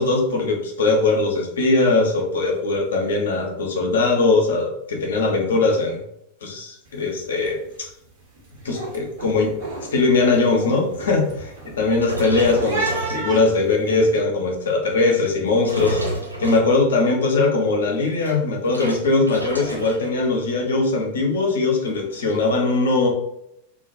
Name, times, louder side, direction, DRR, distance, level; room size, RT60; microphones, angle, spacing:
voice 1, 0.0-6.0 6.4-7.9 8.6-9.5 9.9-11.3 11.8-16.0 16.4-23.1, left 3 dB, 65° left, 0 dB, 0.6 m, -20 dB
sound 1, 6.9-7.1 7.4-7.8 8.2-14.2, right 3 dB, 55° right, 1.0 m, -33 dB
sound 2, 12.0-13.7 14.2-14.5 15.3-17.1 17.9-20.2 20.4-20.7 21.0-21.1 21.4-22.5, right 1 dB, 90° right, 0.8 m, -31 dB
2.3 x 2.2 x 2.5 m, 0.79 s
figure-of-eight pair, 90°, 0 cm